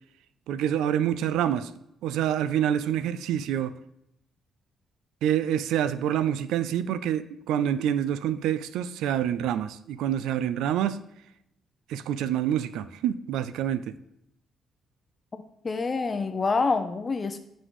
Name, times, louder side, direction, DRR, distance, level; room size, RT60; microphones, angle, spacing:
voice 1, 0.5-1.7 2.0-3.8 5.2-11.0 11.9-14.0, right 10 dB, 90° right, 0.3 m, -27 dB
voice 2, 15.6-17.4, left 4 dB, 35° left, 0.5 m, -26 dB
9.8 x 4.1 x 3.0 m
cardioid pair, 90°, 0 cm